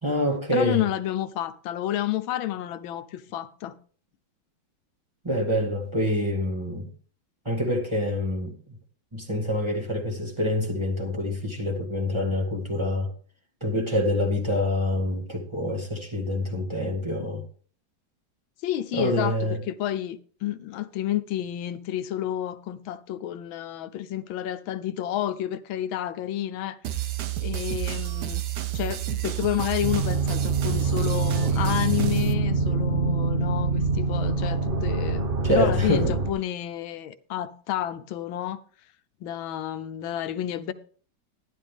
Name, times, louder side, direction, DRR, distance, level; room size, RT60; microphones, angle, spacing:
voice 1, 0.0-0.8 5.2-6.9 7.4-8.5 9.1-13.1 13.6-17.4 18.9-19.6 35.4-36.2, left 1 dB, 15° right, 1.7 m, -26 dB
voice 2, 0.5-3.7 18.6-27.1 27.4-28.4 28.7-38.6 39.2-40.7, left 12 dB, 85° left, 1.5 m, -30 dB
sound 1, 26.8-32.3, right 12 dB, 65° right, 1.3 m, -30 dB
sound 2, 29.8-36.3, right 3 dB, 40° right, 0.8 m, -25 dB
11.0 x 11.0 x 3.5 m
omnidirectional pair, 2.1 m